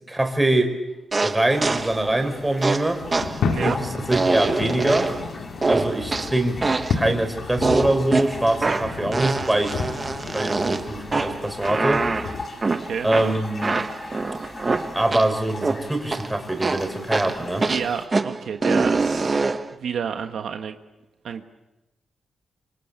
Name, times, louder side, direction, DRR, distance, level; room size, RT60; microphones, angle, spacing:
voice 1, 0.1-0.7 1.2-3.0 3.5-5.1 5.6-6.6 6.9-9.8 10.2-12.0 13.0-13.8 14.9-17.7, right 1 dB, 10° right, 5 dB, 5.0 m, -23 dB
sound 1, 1.1-2.0 2.6-5.3 5.6-7.0 7.6-15.3 15.6-16.3 16.6-19.7, right 3 dB, 30° right, 1.2 m, -25 dB
sound 2, 1.5-18.1, left 3 dB, 40° left, 4.0 m, -40 dB
sound 3, 3.0-12.5, left 5 dB, 80° left, 2.1 m, -32 dB
voice 2, 3.4-3.8 12.5-13.3 17.7-20.8 21.2-21.4, right 7 dB, 75° right, 6 dB, 1.4 m, -30 dB
26.5 x 26.0 x 8.2 m, 1.0 s
cardioid pair, 110°, 0 cm